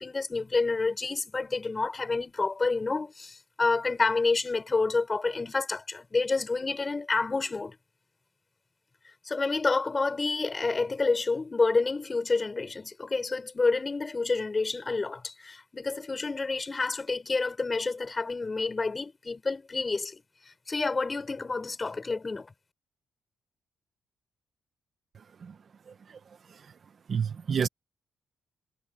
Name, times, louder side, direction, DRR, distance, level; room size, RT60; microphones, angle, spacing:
voice 1, 0.0-7.8 9.2-22.5, left 3 dB, 25° left, 6.8 m, -29 dB
voice 2, 25.9-26.2 27.1-27.7, right 7 dB, 50° right, 1.1 m, -30 dB
cardioid pair, 100°, 0 cm